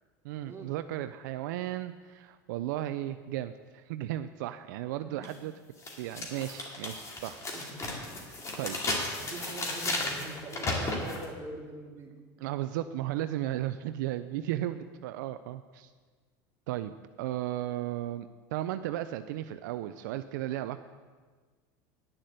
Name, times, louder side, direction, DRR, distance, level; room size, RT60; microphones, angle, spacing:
voice 1, 0.2-5.5 6.0-7.4 7.8-7.9 8.6-8.8 12.4-15.9 16.7-16.9 17.2-20.8, right 13 dB, 80° right, 10 dB, 0.4 m, -35 dB
sound 1, 5.2-5.3 5.8-11.3, left 2 dB, 30° left, 2.4 m, -34 dB
voice 2, 7.5-8.0 9.1-12.1, right 2 dB, 25° right, -2 dB, 2.8 m, -43 dB
10.0 x 6.5 x 7.7 m, 1.5 s
supercardioid pair, 110°, 10 cm